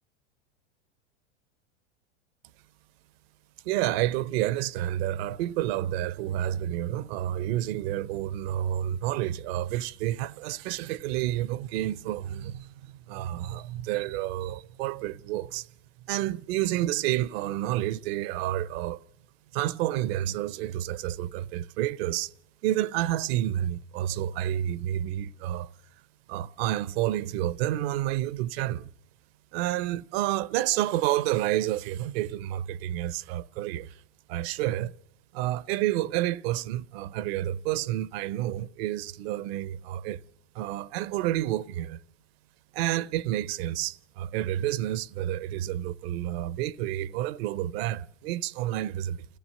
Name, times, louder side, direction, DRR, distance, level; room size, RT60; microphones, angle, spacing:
voice 1, 3.6-15.7 16.1-19.0 19.5-22.3 22.6-25.7 26.3-28.9 29.5-34.0 34.3-34.9 35.3-40.2 40.5-42.0 42.7-49.3, right 13 dB, 55° right, 0.7 m, -29 dB
27.5 x 14.5 x 6.6 m
hypercardioid pair, 110°, 36 cm